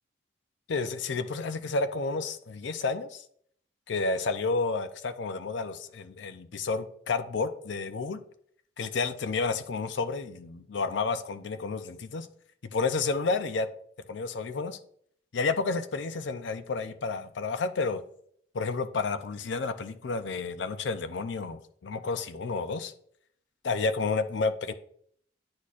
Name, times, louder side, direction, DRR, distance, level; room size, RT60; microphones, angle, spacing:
voice 1, 0.7-3.2 3.9-8.2 8.8-12.3 12.7-13.7 14.1-14.8 15.3-18.0 18.5-22.9 23.6-24.7, left 4 dB, 75° left, 0.5 m, -30 dB
9.5 x 4.3 x 2.4 m
head